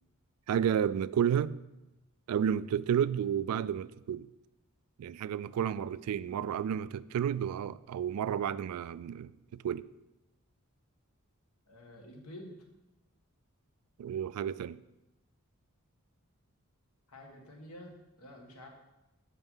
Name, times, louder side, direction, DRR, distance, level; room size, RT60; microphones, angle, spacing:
voice 1, 0.5-1.5 2.3-4.3 5.0-9.9 14.0-14.8, right 8 dB, 85° right, 0.3 m, -31 dB
voice 2, 11.7-12.6 17.1-18.7, left 1 dB, 85° left, 1.5 m, -49 dB
7.1 x 5.6 x 5.5 m
head